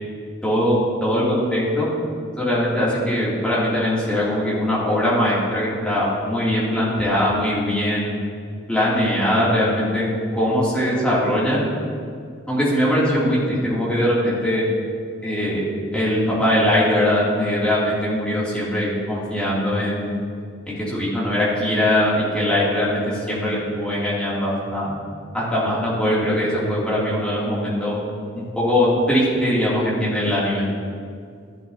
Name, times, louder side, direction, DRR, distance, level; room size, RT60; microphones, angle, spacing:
voice 1, 0.4-1.9 2.4-8.1 8.7-11.6 12.5-14.6 15.2-15.6 15.9-20.2 20.7-24.9 25.3-28.0 28.3-30.7, left 1 dB, 5° left, -9 dB, 2.8 m, -21 dB
14.0 x 11.0 x 2.9 m, 2.2 s
head